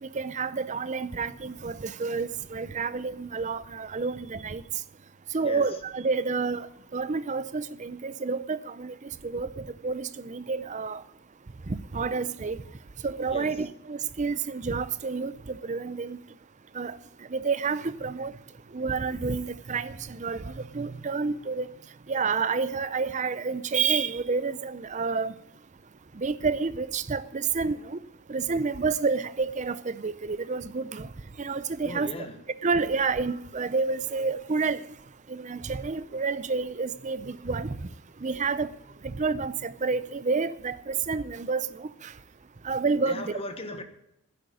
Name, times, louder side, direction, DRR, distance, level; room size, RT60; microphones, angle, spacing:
voice 1, 0.0-4.6 5.3-11.0 11.7-12.6 13.0-16.2 16.7-17.0 17.3-18.3 18.7-21.7 22.1-25.3 26.2-28.0 28.3-31.1 31.4-32.1 32.6-34.8 35.3-37.8 38.2-38.7 39.0-42.1 42.6-43.4, right 4 dB, 35° right, 0.5 m, -29 dB
voice 2, 31.8-32.4 43.1-43.8, left 1 dB, 25° left, 1.2 m, -37 dB
10.5 x 7.9 x 9.3 m
head